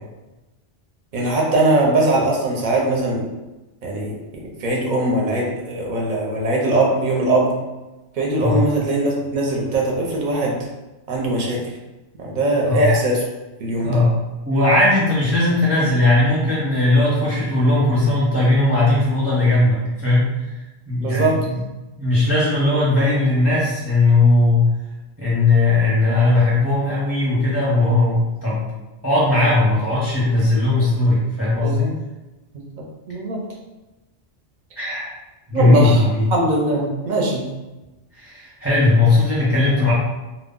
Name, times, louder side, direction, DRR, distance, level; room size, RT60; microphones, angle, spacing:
voice 1, 1.1-3.2 3.8-7.5 8.1-10.7 11.1-11.6 12.2-13.2 13.6-14.0 21.0-21.4 31.6-31.9 32.5-32.6 33.1-33.4 35.5-36.0 36.3-37.5, right 2 dB, 55° right, -2 dB, 0.7 m, -21 dB
voice 2, 13.8-14.1 14.5-20.3 20.9-21.6 22.0-24.6 25.2-28.7 29.0-31.9 34.8-35.1 35.5-36.3 38.1-39.9, left 2 dB, 15° right, -7 dB, 0.6 m, -18 dB
2.1 x 2.0 x 3.6 m, 1.1 s
omnidirectional pair, 1.1 m